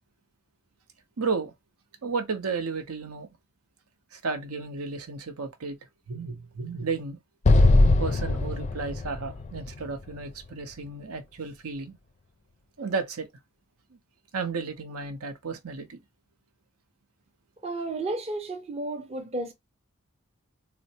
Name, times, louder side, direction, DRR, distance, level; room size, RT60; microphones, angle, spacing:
voice 1, 1.2-1.5 2.0-3.3 4.1-5.8 6.1-7.2 8.0-12.0 12.8-13.3 14.3-16.0, right 4 dB, 85° right, 0.7 m, -33 dB
Explosion, 7.4-10.7, left 2 dB, 30° left, 0.4 m, -22 dB
voice 2, 17.6-19.5, right 2 dB, 30° right, 0.5 m, -32 dB
4.2 x 2.0 x 2.7 m
head